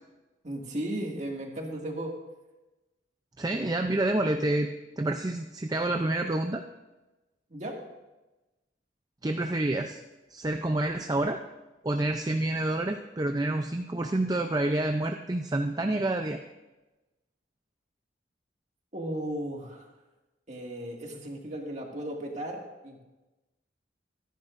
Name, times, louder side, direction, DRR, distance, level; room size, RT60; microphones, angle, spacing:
voice 1, 0.4-2.1 7.5-7.8 18.9-19.8 20.5-23.0, right 1 dB, 40° right, 0 dB, 2.0 m, -35 dB
voice 2, 3.4-4.7 5.0-6.6 9.2-10.0 10.3-11.4 11.8-16.4, right 2 dB, 20° right, 5 dB, 0.5 m, -28 dB
25.0 x 10.5 x 2.5 m, 1.1 s
head